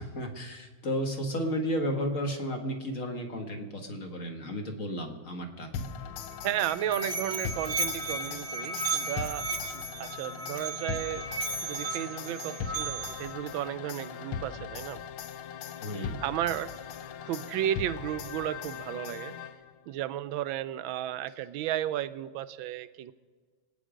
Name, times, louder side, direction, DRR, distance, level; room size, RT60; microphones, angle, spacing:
voice 1, 0.0-5.9 15.8-16.2, equal, 40° left, 4 dB, 1.8 m, -33 dB
sound 1, 5.7-19.9, left 8 dB, 85° left, 1.6 m, -40 dB
Musical instrument, 6.3-13.3, right 3 dB, 50° right, 0.7 m, -35 dB
voice 2, 6.4-11.2 11.6-15.0 16.2-16.7 17.3-19.4 19.9-23.1, right 12 dB, 80° right, 12 dB, 1.4 m, -33 dB
25.0 x 9.4 x 5.1 m, 1.4 s
omnidirectional pair, 2.2 m